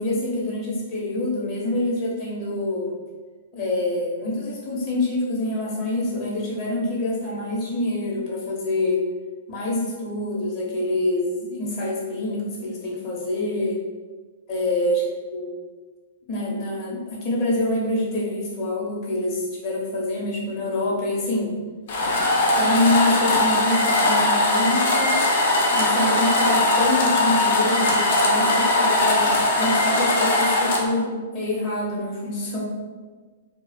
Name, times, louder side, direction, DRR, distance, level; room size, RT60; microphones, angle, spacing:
voice 1, 0.0-2.9 3.5-9.0 9.5-13.8 14.5-15.0 15.3-15.5 16.3-21.5 22.6-25.2 25.7-32.6, left 1 dB, 45° left, -4 dB, 1.0 m, -26 dB
sound 1, 21.9-30.8, left 2 dB, 65° left, 0.5 m, -20 dB
2.3 x 2.2 x 3.3 m, 1.4 s
hypercardioid pair, 120°, 0 cm